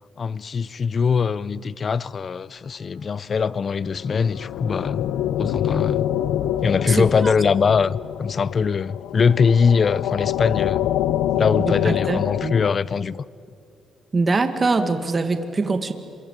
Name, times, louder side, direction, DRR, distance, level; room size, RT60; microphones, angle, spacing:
voice 1, 0.2-5.1 5.4-6.1 6.6-10.9 11.4-13.2, left 5 dB, 45° left, 0.6 m, -22 dB
sound 1, 3.8-12.7, left 11 dB, 85° left, 0.7 m, -26 dB
voice 2, 6.8-7.3 11.6-12.6 14.1-15.9, right 3 dB, 30° right, 1.8 m, -23 dB
27.0 x 23.5 x 8.9 m
cardioid pair, 90°, 0 cm